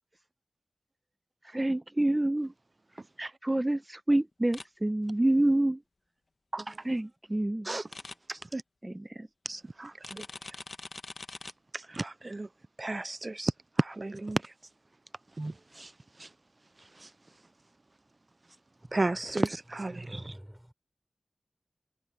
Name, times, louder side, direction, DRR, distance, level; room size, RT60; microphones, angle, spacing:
voice 1, 1.5-2.5 3.4-5.8 6.8-7.7 8.8-9.3, right 1 dB, 25° right, 0.9 m, -27 dB
sound 1, 4.5-4.7 7.9-8.2 10.0-11.5, left 3 dB, 65° left, 1.2 m, -43 dB
voice 2, 8.3-8.6 9.5-10.2 11.7-12.5 12.8-13.5 13.8-14.5 15.4-15.9 16.2-16.3 17.0-17.1 18.9-20.2, right 2 dB, 45° right, 0.3 m, -33 dB
voice 3, 18.8-19.2 20.0-20.7, equal, 5° right, 5.6 m, -49 dB
wide cardioid pair, 50°, 0 cm